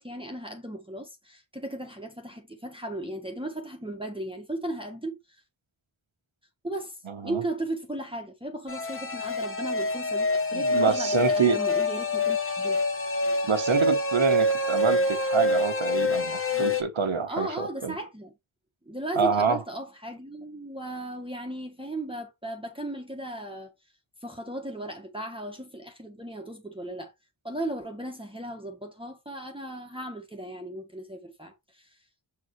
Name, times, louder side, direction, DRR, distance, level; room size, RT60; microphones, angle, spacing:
voice 1, 0.0-5.4 6.6-7.0 7.2-12.8 17.3-18.3 18.8-23.7 24.2-27.1 27.4-32.0, right 1 dB, 10° right, 1.3 m, -36 dB
voice 2, 7.1-7.4 10.5-11.6 13.4-17.9 19.2-19.6, right 5 dB, 80° right, 1.3 m, -27 dB
sound 1, 8.7-16.8, left 1 dB, 30° left, 1.1 m, -26 dB
7.1 x 4.8 x 3.2 m
wide cardioid pair, 55°, 46 cm